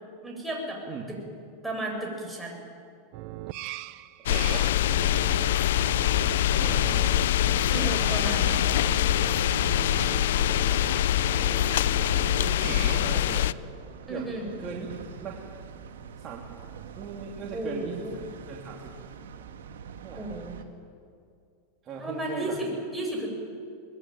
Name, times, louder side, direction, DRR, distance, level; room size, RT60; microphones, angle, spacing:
voice 1, 0.2-0.8 1.1-1.2 1.6-2.6 7.7-8.6 14.1-14.5 17.4-18.1 20.2-20.6 22.0-23.3, right 1 dB, 5° right, -1 dB, 7.3 m, -33 dB
sound 1, 3.1-13.2, right 15 dB, 55° right, 0.8 m, -39 dB
sound 2, 4.3-13.5, left 12 dB, 80° left, 0.5 m, -24 dB
voice 2, 4.3-4.7 6.5-7.1 9.5-9.9 12.4-13.5 14.1-14.2 14.6-14.9 15.2-15.4 16.2-16.4 17.0-18.9 20.0-20.4 21.8-22.6, right 6 dB, 35° right, -2 dB, 3.2 m, -38 dB
sound 3, 5.7-20.6, right 7 dB, 90° right, 2.0 m, -46 dB
23.0 x 21.0 x 9.4 m, 2.3 s
supercardioid pair, 125°, 0 cm